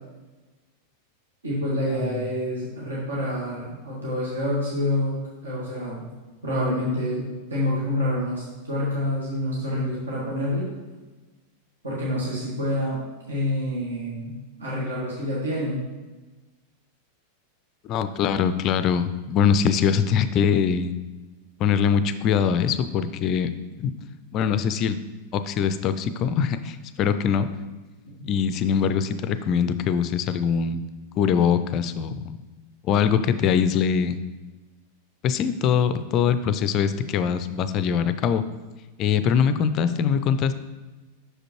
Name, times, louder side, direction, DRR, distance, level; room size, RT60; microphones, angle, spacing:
voice 1, 1.4-6.0 6.4-7.2 7.5-10.7 11.8-13.0 13.3-15.8, left 1 dB, 70° right, -6 dB, 1.5 m, -27 dB
voice 2, 17.8-21.0 21.6-23.5 23.8-23.9 24.3-25.0 25.3-27.5 28.2-30.8 31.2-32.2 32.9-34.2 35.2-38.4 39.0-40.5, left 7 dB, 35° left, 11 dB, 0.3 m, -22 dB
6.1 x 5.0 x 3.0 m, 1.2 s
figure-of-eight pair, 90°, 0 cm